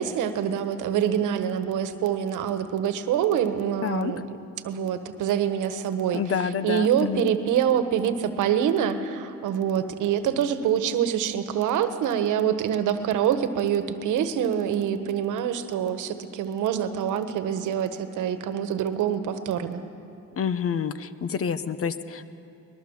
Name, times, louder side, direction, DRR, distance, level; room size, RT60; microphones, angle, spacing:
voice 1, 0.0-4.2 4.6-6.2 6.6-19.8, right 9 dB, 85° right, 10 dB, 1.3 m, -25 dB
voice 2, 3.8-4.1 6.1-7.3 20.4-22.3, left 7 dB, 50° left, 13 dB, 1.0 m, -28 dB
22.5 x 20.5 x 7.3 m, 2.6 s
cardioid pair, 90°, 30 cm